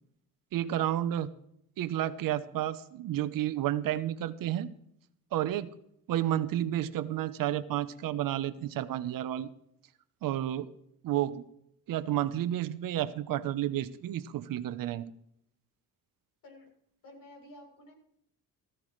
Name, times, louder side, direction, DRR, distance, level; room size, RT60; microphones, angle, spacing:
voice 1, 0.5-1.3 1.8-4.7 5.3-5.7 6.1-9.5 10.2-10.7 11.0-11.5 11.9-15.1, right 12 dB, 65° right, 13 dB, 0.9 m, -31 dB
voice 2, 17.0-17.9, left 1 dB, 70° left, 1 dB, 7.8 m, -51 dB
18.5 x 15.0 x 3.2 m, 0.73 s
cardioid pair, 145°, 35 cm